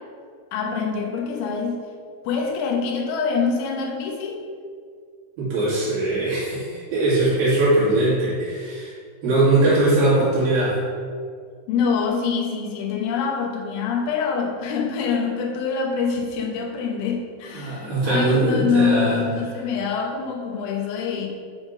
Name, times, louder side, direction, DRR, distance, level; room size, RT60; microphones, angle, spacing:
voice 1, 0.5-1.8 2.3-4.5 11.7-21.3, left 5 dB, 90° left, 0 dB, 3.5 m, -25 dB
voice 2, 5.4-8.9 9.2-10.8 17.5-19.2, right 2 dB, 60° right, -9 dB, 3.6 m, -20 dB
9.3 x 3.5 x 5.2 m, 2.1 s
omnidirectional pair, 5.4 m